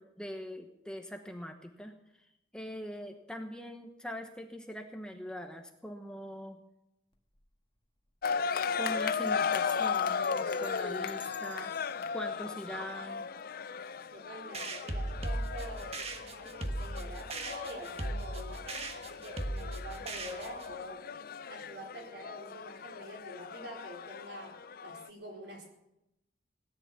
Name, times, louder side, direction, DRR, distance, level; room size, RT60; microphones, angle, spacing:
voice 1, 0.0-1.9 2.2-6.6 8.7-11.7 12.1-13.3, equal, 5° left, 4 dB, 1.0 m, -42 dB
Bell, 7.1-7.5 7.8-7.9 8.1-8.5 9.3-13.3, left 7 dB, 30° left, 1.5 m, -54 dB
sound 1, 8.2-25.1, left 6 dB, 55° left, 0.5 m, -36 dB
voice 2, 14.1-21.1 21.5-25.7, equal, 75° right, 0 dB, 4.2 m, -46 dB
sound 2, 14.5-20.7, right 1 dB, 35° right, 1.4 m, -38 dB
17.5 x 10.0 x 7.1 m, 0.87 s
head